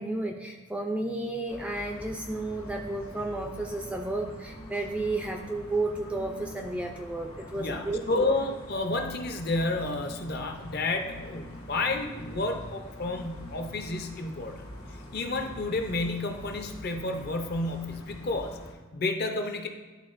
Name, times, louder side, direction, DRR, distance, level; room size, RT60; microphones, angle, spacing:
voice 1, 0.0-8.3, right 2 dB, 5° right, 3 dB, 0.3 m, -32 dB
sound 1, 1.5-18.7, equal, 80° left, 1.4 m, -44 dB
voice 2, 7.6-14.6 15.1-18.6 18.9-19.7, left 2 dB, 45° left, 4 dB, 0.6 m, -30 dB
11.0 x 3.8 x 2.5 m, 1.3 s
head